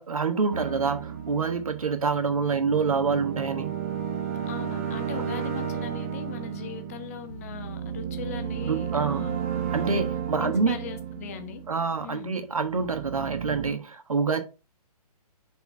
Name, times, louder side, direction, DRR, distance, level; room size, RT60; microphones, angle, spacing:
voice 1, 0.0-3.7 8.6-9.3 9.7-10.8 11.7-14.4, right 5 dB, 60° right, 1.3 m, -26 dB
sound 1, 0.5-12.2 12.6-13.7, right 8 dB, 20° right, 0.6 m, -33 dB
voice 2, 4.5-9.4 10.4-11.6 12.0-12.3, left 10 dB, 25° left, 0.6 m, -39 dB
5.9 x 3.9 x 4.2 m
figure-of-eight pair, 135°, 20 cm